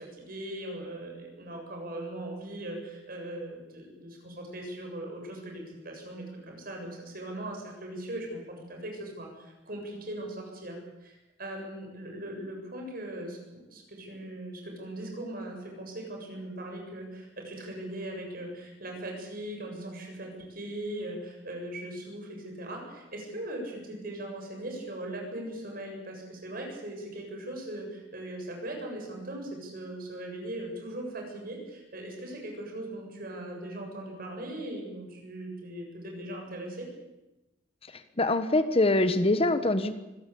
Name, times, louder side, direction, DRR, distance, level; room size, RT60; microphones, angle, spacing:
voice 1, 0.0-36.9, right 1 dB, 50° right, 2 dB, 7.4 m, -39 dB
voice 2, 38.2-39.9, left 2 dB, 30° left, 11 dB, 1.1 m, -24 dB
25.0 x 16.5 x 8.5 m, 1.0 s
head